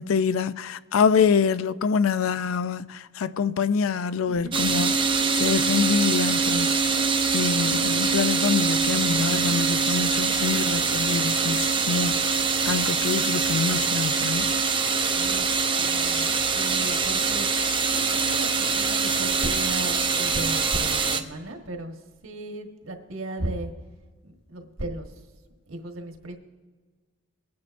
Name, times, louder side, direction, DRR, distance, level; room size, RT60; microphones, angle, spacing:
voice 1, 0.0-5.0 5.3-7.0 7.3-12.2 12.6-14.5, left 6 dB, 75° left, 0.4 m, -25 dB
voice 2, 4.2-5.1 15.1-15.5 15.8-17.5 17.9-21.9 22.2-23.7 24.2-25.1 25.7-26.4, right 1 dB, 75° right, 1.4 m, -36 dB
sound 1, 4.5-21.2, right 5 dB, 25° right, 0.6 m, -24 dB
23.5 x 9.5 x 2.6 m
head